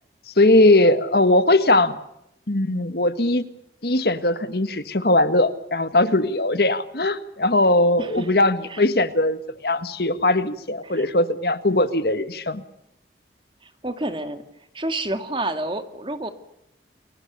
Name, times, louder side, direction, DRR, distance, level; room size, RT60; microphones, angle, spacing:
voice 1, 0.4-2.0 2.5-3.4 3.8-12.6, left 2 dB, 65° left, 12 dB, 1.7 m, -20 dB
voice 2, 8.0-8.3 8.7-8.8 10.8-11.1 13.6-14.4 14.7-16.3, right 2 dB, 30° right, 9 dB, 2.2 m, -29 dB
30.0 x 22.0 x 7.0 m, 0.79 s
head